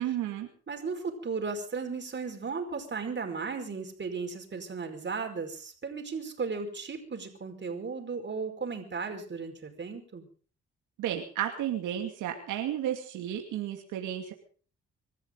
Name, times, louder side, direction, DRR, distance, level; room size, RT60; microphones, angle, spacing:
voice 1, 0.0-0.5 11.0-14.3, right 11 dB, 90° right, 3 dB, 2.5 m, -32 dB
voice 2, 0.7-10.3, right 4 dB, 35° right, 4 dB, 5.1 m, -35 dB
26.0 x 13.5 x 3.9 m, 0.41 s
cardioid pair, 90°, 30 cm